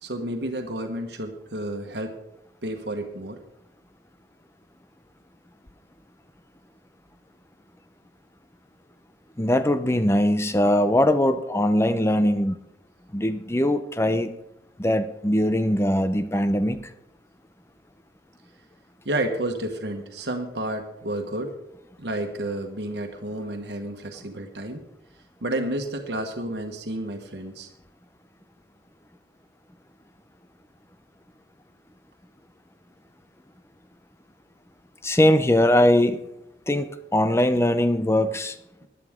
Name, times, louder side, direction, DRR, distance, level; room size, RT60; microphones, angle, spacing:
voice 1, 0.0-2.2 2.6-3.4 19.0-21.5 22.0-24.8 25.4-27.7, right 1 dB, 75° right, 3 dB, 1.4 m, -31 dB
voice 2, 9.4-12.6 13.1-14.3 14.8-16.9 35.0-36.2 36.7-38.6, left 1 dB, 15° left, 11 dB, 0.7 m, -21 dB
17.0 x 11.0 x 3.7 m, 0.85 s
head